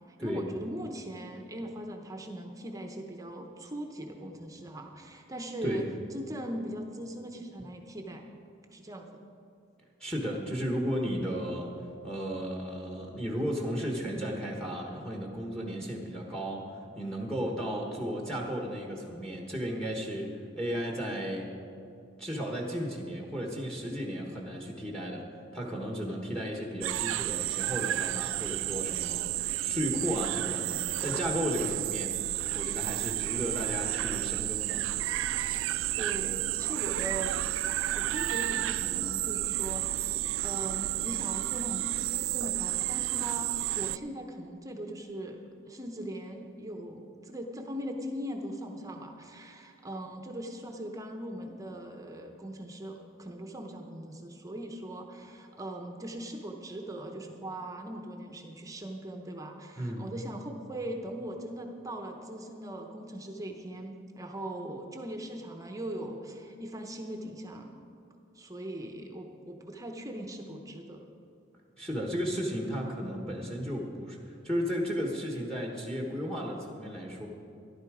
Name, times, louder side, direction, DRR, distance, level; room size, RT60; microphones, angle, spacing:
voice 1, 0.1-5.8 6.1-8.2 8.7-9.2 36.0-37.5 37.9-45.4 45.7-67.7 68.3-71.0, right 1 dB, 15° right, 3 dB, 0.8 m, -40 dB
voice 2, 10.0-11.7 12.0-21.5 22.2-25.2 25.5-34.8 59.8-60.1 71.8-77.3, equal, 5° left, 1 dB, 1.2 m, -34 dB
sound 1, 26.8-44.0, right 15 dB, 75° right, 0.3 m, -31 dB
13.5 x 11.5 x 4.9 m, 2.5 s
head